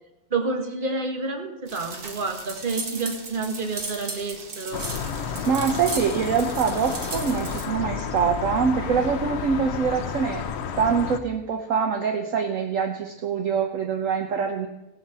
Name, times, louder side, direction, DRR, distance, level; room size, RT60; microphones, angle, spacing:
voice 1, 0.3-4.8, right 3 dB, 35° right, 4 dB, 1.7 m, -29 dB
sound 1, 1.7-7.7, right 3 dB, 85° right, 2.0 m, -36 dB
sound 2, 4.7-11.2, left 6 dB, 55° left, 0.9 m, -31 dB
voice 2, 5.5-10.4 10.8-14.7, right 6 dB, 65° right, 4 dB, 1.2 m, -24 dB
17.0 x 5.7 x 7.5 m, 0.96 s
omnidirectional pair, 1.6 m